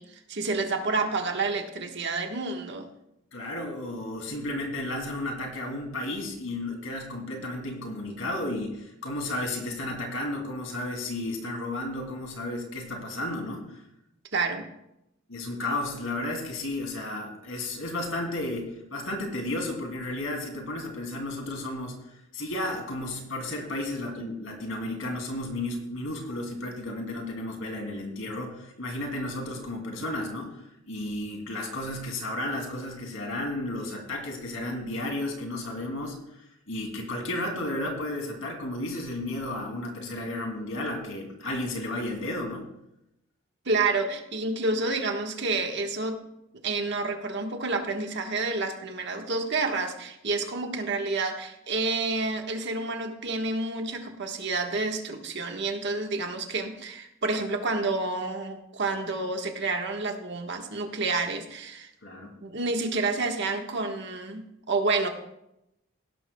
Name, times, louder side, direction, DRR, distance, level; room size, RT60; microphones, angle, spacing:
voice 1, 0.0-2.9 14.3-14.7 43.6-46.2 46.6-61.9 62.4-65.1, right 3 dB, 60° right, 4 dB, 1.4 m, -29 dB
voice 2, 3.3-13.8 15.3-36.4 36.7-42.7 62.0-62.3, left 1 dB, 85° left, 2 dB, 2.7 m, -33 dB
17.0 x 12.0 x 2.3 m, 0.84 s
head